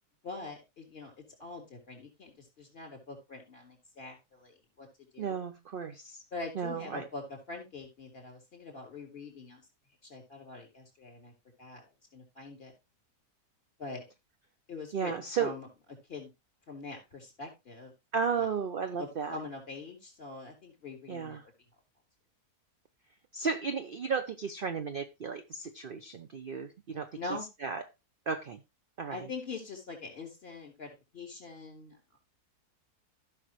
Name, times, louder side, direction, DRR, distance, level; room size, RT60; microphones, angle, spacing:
voice 1, 0.2-1.1 1.4-4.9 5.1-5.4 6.3-7.2 7.5-9.6 10.1-11.3 11.6-11.8 12.1-12.7 13.8-14.0 14.7-15.7 16.1-16.3 16.7-17.9 18.4-18.5 19.0-21.4 27.1-27.5 29.1-32.2, left 3 dB, 35° left, 3.9 m, -43 dB
voice 2, 5.2-6.2 6.6-7.0 14.9-15.5 18.1-19.4 21.1-21.4 23.3-27.2 27.6-27.8 28.3-28.6 29.0-29.3, right 6 dB, 55° right, 0.6 m, -34 dB
15.5 x 6.0 x 3.1 m
omnidirectional pair, 1.7 m